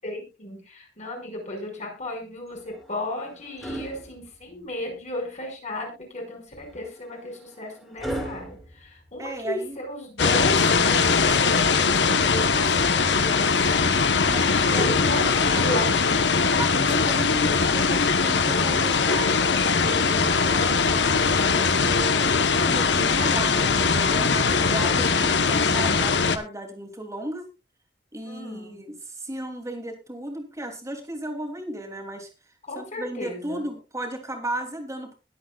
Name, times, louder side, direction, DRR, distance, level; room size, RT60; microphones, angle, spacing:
voice 1, 0.0-13.9 14.2-15.9 20.5-21.3 28.2-28.8 32.7-33.6, left 1 dB, 40° left, 1 dB, 5.8 m, -35 dB
sound 1, 2.5-4.9 6.5-9.7 11.5-12.6 14.6-16.4 17.7-17.9, right 1 dB, ahead, 3.9 m, -40 dB
voice 2, 9.2-9.8 14.2-15.0 15.4-15.7 16.6-19.4 19.8-20.6 21.5-27.5 28.1-32.3 32.7-35.2, right 1 dB, 20° right, 4 dB, 3.0 m, -35 dB
sound 2, 10.2-26.4, left 5 dB, 90° left, 1.2 m, -21 dB
21.5 x 8.5 x 2.4 m, 0.29 s
head